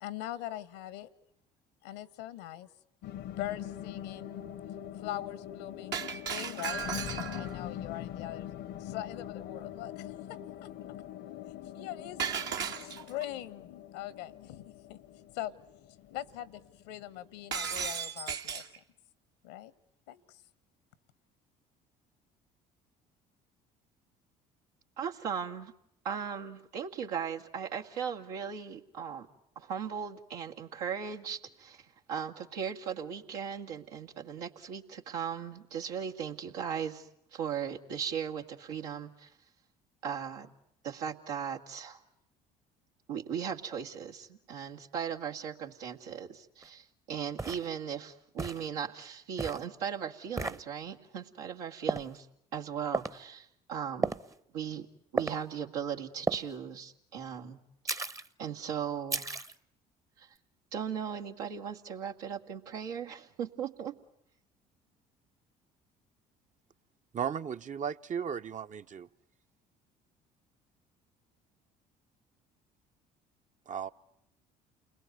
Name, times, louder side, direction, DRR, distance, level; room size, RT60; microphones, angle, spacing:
voice 1, 0.0-1.1 1.8-2.7 3.4-4.4 4.9-6.9 7.4-8.5 8.8-10.1 10.6-10.7 11.7-14.6 14.9-15.0 15.3-15.5 16.1-16.6 16.9-18.8 19.4-19.7 20.1-20.4, left 13 dB, 75° left, 19 dB, 1.4 m, -42 dB
sound 1, 3.0-17.6, left 11 dB, 60° left, 1.1 m, -43 dB
Shatter, 5.9-7.6 12.2-13.2 17.5-18.8, right 7 dB, 60° right, 1.8 m, -35 dB
voice 2, 25.0-25.7 26.0-29.3 29.6-39.3 40.0-40.5 40.8-42.0 43.1-52.3 52.5-54.1 54.5-54.9 55.1-57.6 57.8-58.1 58.4-59.4 60.2-60.3 60.7-64.0, right 7 dB, 80° right, 1 dB, 2.2 m, -38 dB
sound 2, 46.6-46.7 47.4-47.7 48.4-48.7 49.4-49.6 50.4-50.6 51.9-52.1 52.9-53.2 54.0-54.3 55.2-55.4 56.3-56.5 57.9-58.3 59.1-59.5, right 3 dB, 15° right, 1.0 m, -33 dB
voice 3, 67.1-69.1 73.7-73.9, right 7 dB, 40° right, 10 dB, 1.1 m, -35 dB
29.5 x 21.5 x 9.4 m, 0.76 s
hypercardioid pair, 60°, 20 cm